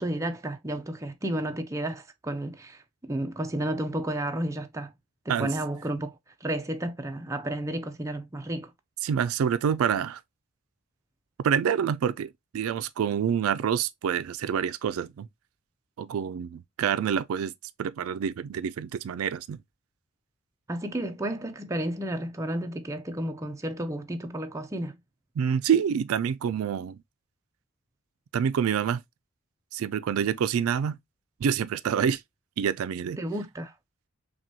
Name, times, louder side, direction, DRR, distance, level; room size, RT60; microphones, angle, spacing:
voice 1, 0.0-4.9 5.3-6.1 6.4-8.7 20.7-25.0 33.2-33.7, right 1 dB, 15° right, 0.4 m, -32 dB
voice 2, 9.0-10.2 11.4-15.3 16.0-17.5 17.8-19.6 25.4-27.0 28.3-29.0 29.7-31.0 31.4-32.2 32.6-33.2, right 8 dB, 80° right, 0.3 m, -27 dB
5.9 x 2.3 x 2.7 m
head